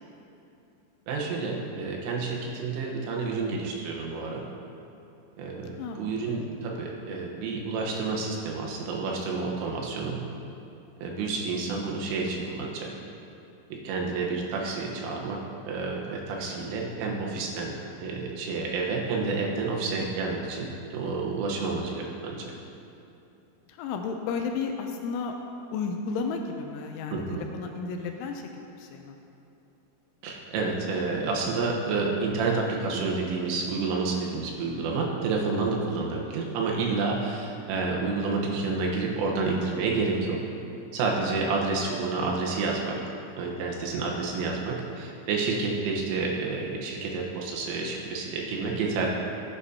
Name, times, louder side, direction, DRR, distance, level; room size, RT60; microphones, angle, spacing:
voice 1, 1.1-4.4 5.4-10.2 11.0-12.9 13.7-22.5 27.1-27.4 30.2-40.5 40.9-43.0 43.4-49.1, right 4 dB, 80° right, -1 dB, 3.6 m, -29 dB
voice 2, 5.6-6.1 23.7-25.3 25.7-28.5 28.8-29.2, left 5 dB, 80° left, 3 dB, 2.9 m, -33 dB
15.0 x 9.1 x 2.8 m, 2.8 s
omnidirectional pair, 5.7 m